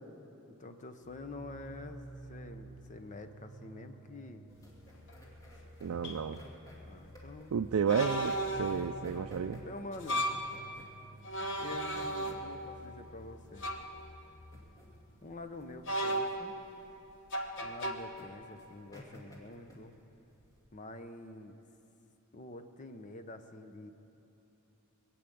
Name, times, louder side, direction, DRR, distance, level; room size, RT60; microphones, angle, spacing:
voice 1, 0.5-2.0 2.3-4.4 5.9-6.1 6.9-7.6 9.6-10.3 11.6-13.7 15.2-16.6 17.6-19.9 20.7-21.6 22.3-23.9, left 2 dB, 35° left, 8 dB, 0.8 m, -47 dB
sound 1, 1.0-14.7, right 1 dB, 20° right, 1.7 m, -52 dB
sound 2, 4.5-20.6, equal, 15° left, 2.4 m, -55 dB
sound 3, 5.1-5.2 6.0-6.2 7.9-8.9 9.9-10.5 11.2-12.7 13.6-13.9 15.9-16.6 17.3-17.9, right 1 dB, 60° left, 1.2 m, -35 dB
voice 2, 5.8-6.4 7.5-8.3 8.6-9.6, right 6 dB, 65° right, 6 dB, 0.4 m, -31 dB
21.5 x 7.8 x 8.5 m, 2.9 s
head